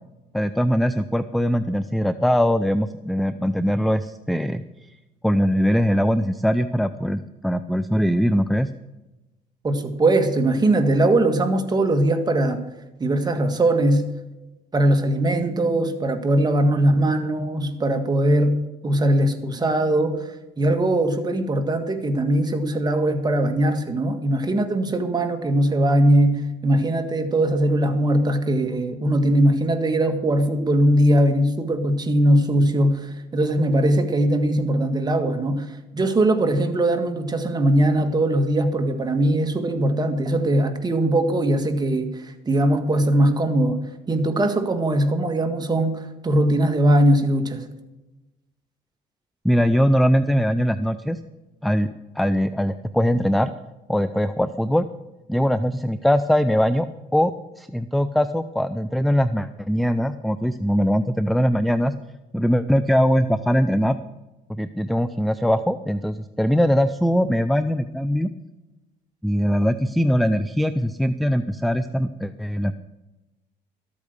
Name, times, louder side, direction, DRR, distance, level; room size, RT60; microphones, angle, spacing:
voice 1, 0.3-4.6 5.2-8.7 49.4-51.2 51.6-51.9 52.2-53.5 53.9-54.9 55.3-56.9 57.1-61.9 62.3-64.0 64.5-68.3 69.2-72.7, equal, ahead, 12 dB, 0.5 m, -21 dB
voice 2, 9.6-12.6 13.0-14.0 14.7-18.6 18.8-20.3 20.6-47.7, right 1 dB, 25° right, 6 dB, 1.7 m, -20 dB
13.5 x 8.6 x 6.6 m, 1.0 s
cardioid pair, 110°, 17 cm